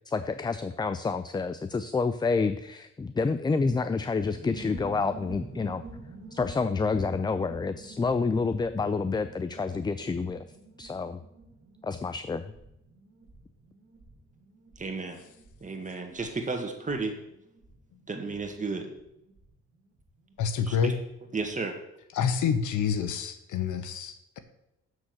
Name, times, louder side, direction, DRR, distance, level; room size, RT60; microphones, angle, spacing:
voice 1, 0.1-5.8 6.3-10.4 10.8-11.2 11.8-12.4, left 4 dB, 15° left, 11 dB, 0.3 m, -28 dB
sound 1, 4.2-20.5 20.8-20.9 21.1-21.5, right 2 dB, 45° right, 2.2 m, -49 dB
voice 2, 14.8-15.2 15.6-17.2 18.1-18.9 20.7-21.0 21.3-21.8, right 3 dB, 25° right, 4 dB, 1.7 m, -33 dB
voice 3, 20.4-20.9 22.1-24.4, left 7 dB, 80° left, 10 dB, 1.0 m, -28 dB
7.1 x 6.3 x 6.2 m, 0.83 s
cardioid pair, 90°, 30 cm